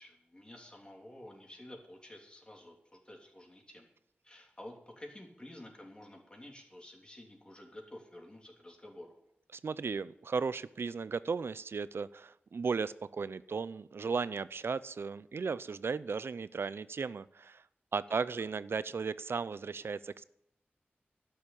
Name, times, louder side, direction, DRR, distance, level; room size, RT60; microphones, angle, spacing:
voice 1, 0.0-3.9 4.2-9.1 18.1-18.4, left 1 dB, 25° left, 0 dB, 3.1 m, -51 dB
voice 2, 9.6-17.6 17.9-20.2, right 5 dB, 80° right, 17 dB, 0.5 m, -35 dB
12.0 x 7.2 x 8.7 m, 0.78 s
wide cardioid pair, 95°, 4 cm